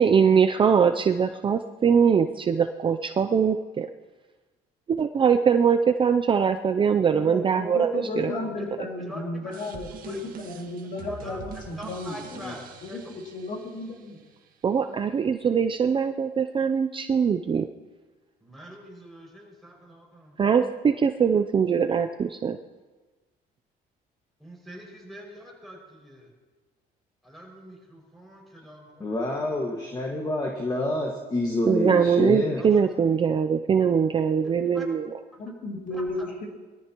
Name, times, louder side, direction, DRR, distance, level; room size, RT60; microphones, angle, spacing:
voice 1, 0.0-3.9 5.0-8.3 14.6-17.7 20.4-22.6 31.7-35.1, right 6 dB, 30° right, 7 dB, 0.5 m, -22 dB
voice 2, 7.1-12.5 12.8-14.2 35.4-36.5, left 2 dB, 50° left, 0 dB, 2.6 m, -34 dB
voice 3, 8.2-9.5 10.0-10.2 11.0-11.4 11.8-13.0 18.4-20.4 24.4-26.3 27.2-29.0 32.6-32.8 34.4-34.9 35.9-36.3, equal, ahead, -3 dB, 6.0 m, -43 dB
sound 1, 9.5-14.5, right 5 dB, 55° right, 1.8 m, -44 dB
voice 4, 29.0-32.6, left 1 dB, 25° left, 0 dB, 1.7 m, -27 dB
22.0 x 14.0 x 3.0 m, 1.3 s
cardioid pair, 110°, 17 cm